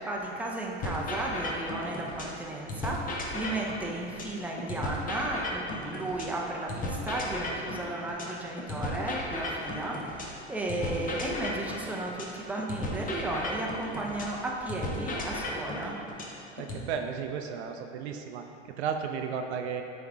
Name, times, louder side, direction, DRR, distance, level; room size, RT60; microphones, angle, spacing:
voice 1, 0.0-16.0, right 2 dB, 5° right, -2 dB, 0.7 m, -34 dB
sound 1, 0.8-2.4 2.7-6.4 6.7-10.4 10.7-14.4 14.7-16.8, left 2 dB, 25° left, 0.9 m, -35 dB
voice 2, 16.6-19.8, right 6 dB, 70° right, 5 dB, 0.5 m, -34 dB
7.0 x 3.6 x 3.7 m, 2.8 s
hypercardioid pair, 85°, 34 cm